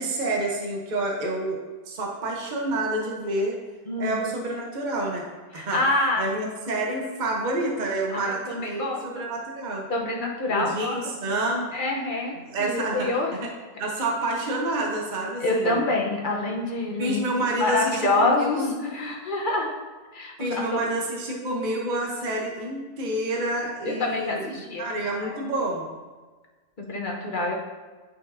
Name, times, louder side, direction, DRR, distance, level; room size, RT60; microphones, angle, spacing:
voice 1, 0.0-3.6 4.0-5.2 5.5-5.8 6.2-9.9 10.5-11.7 12.5-13.1 13.4-13.5 13.8-15.8 17.0-18.7 20.4-25.9, right 2 dB, 35° right, -1 dB, 1.0 m, -28 dB
voice 2, 3.9-4.2 5.5-6.3 8.1-9.2 9.9-11.0 11.2-11.4 11.7-13.3 15.4-19.7 20.1-20.6 23.9-25.4 26.8-27.5, left 2 dB, 35° left, -1 dB, 1.0 m, -27 dB
9.1 x 5.5 x 2.7 m, 1.3 s
omnidirectional pair, 1.6 m